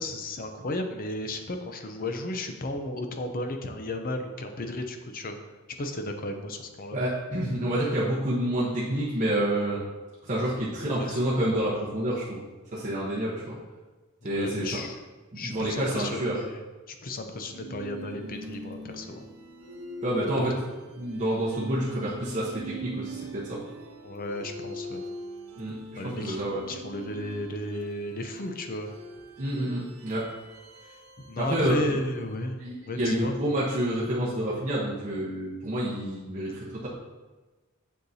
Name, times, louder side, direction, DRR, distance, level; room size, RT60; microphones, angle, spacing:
voice 1, 0.0-5.4 5.8-7.0 11.0-11.2 14.2-15.0 15.4-16.6 16.9-19.3 20.4-20.6 24.0-25.0 26.0-28.9 31.3-32.6 32.9-33.3, left 1 dB, 45° left, 6 dB, 0.6 m, -34 dB
voice 2, 6.9-9.8 10.2-12.5 12.7-13.6 14.2-14.8 15.4-16.4 20.0-20.6 20.9-23.6 25.6-25.8 26.0-26.6 29.4-30.2 31.4-32.0 32.6-36.9, right 1 dB, 35° right, -8 dB, 1.0 m, -28 dB
sound 1, 17.4-32.5, right 1 dB, 80° right, 0.8 m, -42 dB
6.7 x 6.4 x 2.8 m, 1.2 s
head